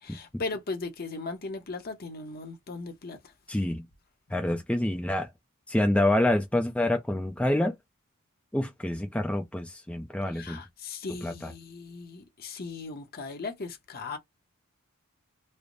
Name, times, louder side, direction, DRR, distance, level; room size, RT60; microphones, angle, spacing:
voice 1, 0.0-3.2 10.3-14.2, left 3 dB, 45° left, 0.8 m, -37 dB
voice 2, 3.5-3.8 4.3-5.3 5.7-7.7 8.5-10.6 11.2-11.5, left 1 dB, 5° left, 0.4 m, -27 dB
3.3 x 2.1 x 3.9 m
head